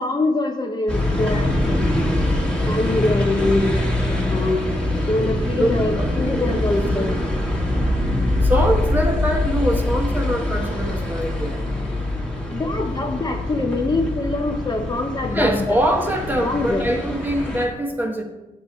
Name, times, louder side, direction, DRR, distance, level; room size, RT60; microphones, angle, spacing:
voice 1, 0.0-2.2 2.6-4.6 5.1-7.2 7.6-7.7 12.5-15.8 16.4-17.0, left 2 dB, 30° left, 3 dB, 0.6 m, -24 dB
sound 1, 0.9-17.7, left 1 dB, 5° left, 1.4 m, -23 dB
voice 2, 5.9-6.6 8.4-11.6 15.3-18.2, equal, 10° right, 2 dB, 1.0 m, -23 dB
7.8 x 6.6 x 4.2 m, 1.1 s
wide cardioid pair, 145°, 15 cm